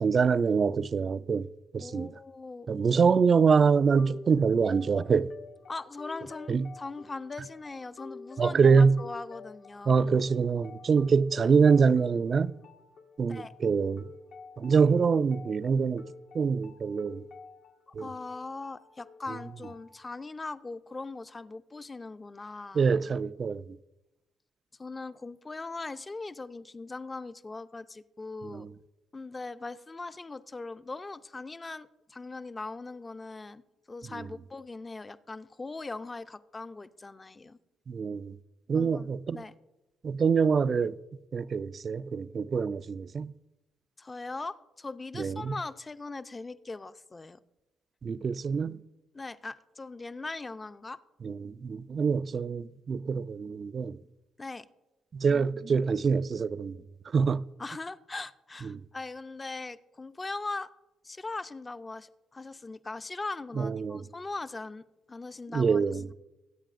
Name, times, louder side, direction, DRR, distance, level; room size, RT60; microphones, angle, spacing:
voice 1, 0.0-1.5 1.7-2.1 2.7-5.3 6.5-6.7 8.4-9.0 9.9-12.5 13.2-14.0 14.6-16.1 16.3-17.2 17.9-18.1 22.7-23.6 28.4-28.7 37.9-38.4 38.7-39.4 40.0-41.0 41.3-43.3 45.2-45.5 48.0-48.8 51.2-54.0 55.1-56.8 57.1-57.4 58.7-58.8 63.6-64.0 65.5-66.1, right 5 dB, 45° right, 0.3 m, -25 dB
voice 2, 1.8-2.7 5.7-9.9 13.3-13.5 17.9-22.9 24.8-28.7 29.1-37.6 38.7-39.5 44.0-47.4 49.1-51.0 54.4-54.7 57.6-60.7 61.0-65.8, left 3 dB, 25° left, 0.5 m, -40 dB
sound 1, 4.0-20.0, left 4 dB, 80° left, 1.3 m, -49 dB
23.0 x 8.4 x 2.5 m
cardioid pair, 90°, 0 cm